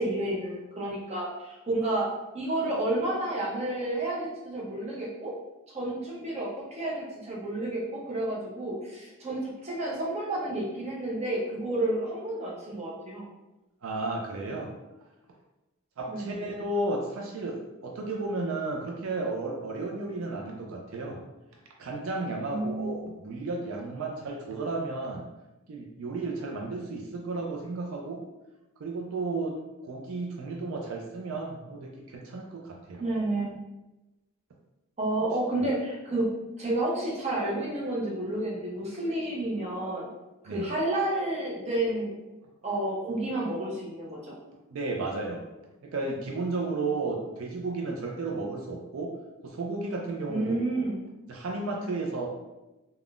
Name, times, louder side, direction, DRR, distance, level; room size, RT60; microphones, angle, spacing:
voice 1, 0.0-2.1 2.3-5.3 5.7-13.3 16.1-16.6 22.5-23.3 33.0-33.6 35.0-40.1 40.4-42.1 42.6-44.4 50.3-51.0, right 1 dB, 30° right, -4 dB, 0.6 m, -30 dB
voice 2, 13.8-14.7 16.0-21.2 21.8-25.2 25.7-28.2 28.8-33.0 40.5-40.7 44.7-45.4 45.8-49.2 49.4-50.8 51.3-52.3, right 3 dB, 75° right, 0 dB, 0.4 m, -33 dB
3.5 x 2.2 x 2.4 m, 1.0 s
head